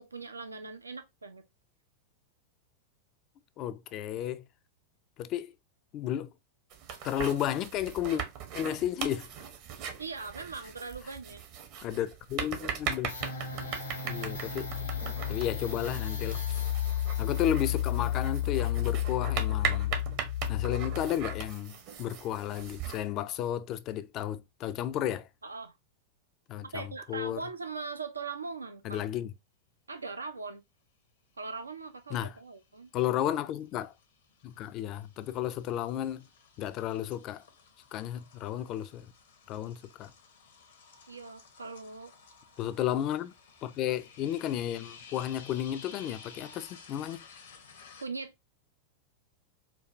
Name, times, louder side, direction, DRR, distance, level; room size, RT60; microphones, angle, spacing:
voice 1, 0.0-1.5 10.0-11.4 25.4-25.8 26.6-29.0 29.9-30.6 31.4-32.9 41.1-42.1 42.9-43.0 48.0-48.3, right 4 dB, 80° right, 0.4 m, -40 dB
voice 2, 3.6-4.4 5.2-5.5 5.9-6.3 7.0-8.2 8.5-9.3 11.8-13.1 14.0-14.7 15.3-16.6 17.2-19.9 20.5-25.3 26.5-27.4 28.8-29.3 32.1-32.3 32.9-33.9 34.4-36.3 36.6-37.4 37.9-39.1 39.5-40.1 42.6-43.3 43.6-47.2, left 11 dB, 35° left, 0.3 m, -33 dB
sound 1, 6.7-23.0, right 7 dB, 45° right, 0.8 m, -39 dB
sound 2, 13.1-21.5, left 11 dB, 80° left, 1.3 m, -32 dB
sound 3, 31.7-32.2 32.5-48.1, left 5 dB, 60° left, 0.8 m, -54 dB
4.6 x 2.2 x 2.5 m
figure-of-eight pair, 90°, 0 cm